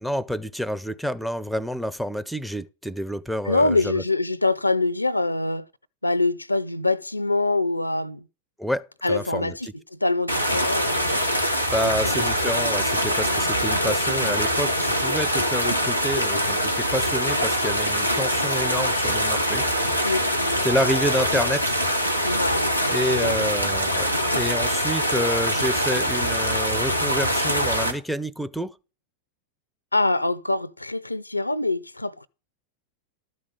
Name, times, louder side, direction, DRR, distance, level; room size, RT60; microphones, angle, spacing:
voice 1, 0.0-4.0 8.6-9.5 11.7-19.7 20.6-21.8 22.9-28.7, equal, ahead, 0.6 m, -28 dB
voice 2, 3.5-5.7 6.0-8.2 9.0-11.2 11.8-12.1 13.2-13.5 20.0-20.6 22.2-23.5 29.9-32.3, left 2 dB, 85° left, 0.5 m, -25 dB
sound 1, 10.3-27.9, equal, 90° right, 1.4 m, -23 dB
12.5 x 5.2 x 7.0 m
figure-of-eight pair, 90°, 0 cm